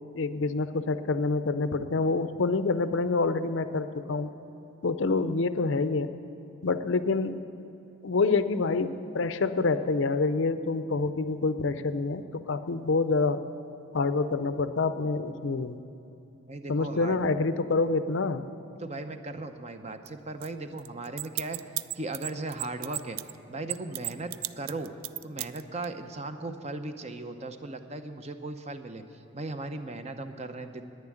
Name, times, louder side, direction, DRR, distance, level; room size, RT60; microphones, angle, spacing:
voice 1, 0.1-4.3 4.8-6.1 6.6-7.4 8.0-13.4 13.9-15.8 16.7-18.4, left 3 dB, 65° left, 12 dB, 0.5 m, -27 dB
voice 2, 16.5-17.2 18.8-21.6 22.0-23.2 23.5-24.9 25.2-30.9, right 2 dB, 30° right, 8 dB, 0.6 m, -37 dB
sound 1, 20.1-20.2 20.4-20.5 20.8-23.3 23.7-25.8, right 16 dB, 80° right, 0.4 m, -33 dB
10.5 x 9.4 x 9.9 m, 2.8 s
head